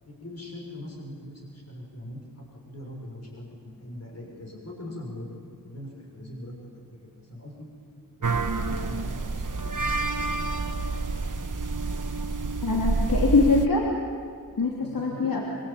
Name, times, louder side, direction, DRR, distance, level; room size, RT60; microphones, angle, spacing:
voice 1, 0.0-6.7 7.0-7.7 8.2-10.6 11.7-12.0 14.8-15.4, left 1 dB, 45° left, -1 dB, 6.4 m, -42 dB
sound 1, 8.2-13.7, right 3 dB, 65° right, 1.4 m, -28 dB
voice 2, 12.6-13.8 14.6-15.4, left 3 dB, 75° left, -2 dB, 3.2 m, -23 dB
25.0 x 24.5 x 8.8 m, 2.1 s
wide cardioid pair, 75°, 34 cm